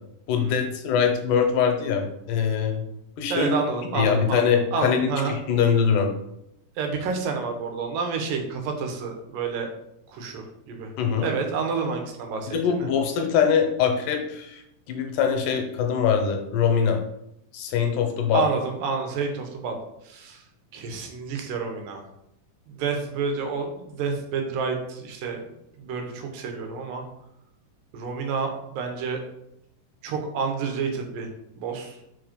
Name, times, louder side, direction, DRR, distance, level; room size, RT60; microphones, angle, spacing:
voice 1, 0.3-2.8 3.2-3.5 3.9-6.1 11.0-11.3 12.5-14.6 14.9-17.0 17.5-18.4, left 7 dB, 80° left, 4 dB, 2.3 m, -23 dB
voice 2, 3.3-5.3 6.8-9.7 10.1-10.9 11.2-12.9 18.3-19.8 20.0-20.4 20.7-22.0 22.7-27.0 27.9-29.2 30.0-31.3 31.6-32.0, right 5 dB, 90° right, 3 dB, 2.6 m, -29 dB
5.2 x 3.8 x 5.1 m, 0.82 s
omnidirectional pair, 3.8 m